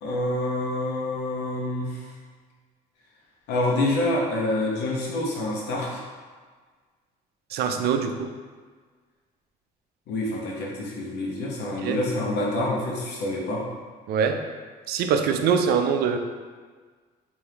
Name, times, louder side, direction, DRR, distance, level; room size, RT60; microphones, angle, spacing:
voice 1, 0.0-2.0 3.5-6.0 10.1-13.6, left 1 dB, 85° left, -3 dB, 1.0 m, -27 dB
voice 2, 7.5-8.3 11.8-12.0 14.1-14.4 14.9-16.2, right 6 dB, 70° right, 6 dB, 0.4 m, -23 dB
4.9 x 2.7 x 2.8 m, 1.5 s
cardioid pair, 110°, 17 cm